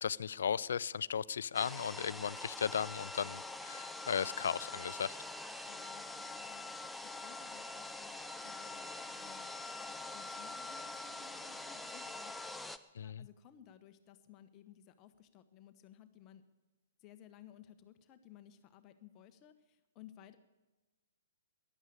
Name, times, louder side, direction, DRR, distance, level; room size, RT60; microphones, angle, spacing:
voice 1, 0.0-5.2 12.9-13.3, left 7 dB, 65° left, 21 dB, 0.4 m, -36 dB
sound 1, 1.5-12.8, left 2 dB, 5° left, 0.6 m, -44 dB
voice 2, 5.7-6.7 7.0-9.5 9.9-12.4 13.0-16.4 17.0-20.4, left 10 dB, 30° left, 9 dB, 1.1 m, -58 dB
14.0 x 11.0 x 8.6 m, 1.2 s
figure-of-eight pair, 120°, 0 cm